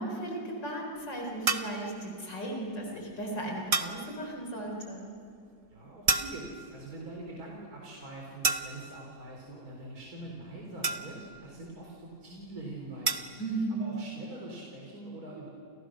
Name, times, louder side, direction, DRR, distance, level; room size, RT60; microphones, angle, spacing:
voice 1, 0.0-5.0 13.4-13.9, right 2 dB, 75° left, 1 dB, 4.8 m, -36 dB
sound 1, 1.5-1.8 3.7-4.1 6.1-6.7 8.4-9.0 10.8-11.4 13.1-13.4, right 3 dB, 30° right, 0.8 m, -30 dB
voice 2, 5.7-13.2 13.8-15.5, right 2 dB, 55° right, -2 dB, 4.4 m, -44 dB
29.5 x 29.0 x 6.4 m, 2.4 s
omnidirectional pair, 1.9 m